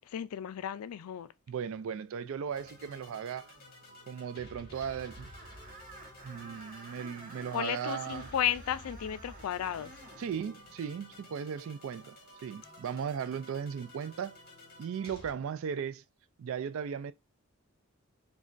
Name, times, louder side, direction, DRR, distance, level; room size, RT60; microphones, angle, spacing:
voice 1, 0.1-1.3 7.5-9.9, left 10 dB, 80° left, 0.3 m, -34 dB
voice 2, 1.5-3.5 4.1-5.3 6.2-8.3 10.2-12.2 12.4-14.4 14.8-16.0 16.4-17.1, right 7 dB, 65° right, 0.3 m, -37 dB
sound 1, 2.5-15.3, left 1 dB, 45° left, 1.5 m, -52 dB
Screech, 4.7-10.3, right 2 dB, 35° right, 0.9 m, -51 dB
5.0 x 2.3 x 2.5 m
head